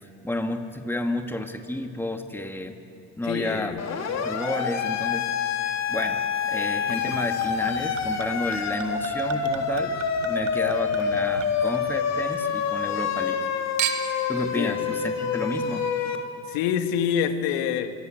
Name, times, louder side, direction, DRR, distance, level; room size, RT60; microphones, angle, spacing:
voice 1, 0.2-2.7 3.2-3.8 4.1-5.3 5.6-10.0 10.2-13.4 14.3-15.9, left 1 dB, 5° left, 5 dB, 2.4 m, -31 dB
voice 2, 3.2-3.8 14.5-14.9 16.5-17.9, left 8 dB, 65° left, 8 dB, 2.0 m, -26 dB
Siren, 3.8-16.2, left 6 dB, 45° left, 3.3 m, -27 dB
Chink clink / Liquid, 6.9-12.4 12.7-13.4 13.8-14.3 15.0-15.1, right 10 dB, 80° right, 2.2 m, -36 dB
28.0 x 23.0 x 8.1 m, 2.5 s
hypercardioid pair, 65°, 38 cm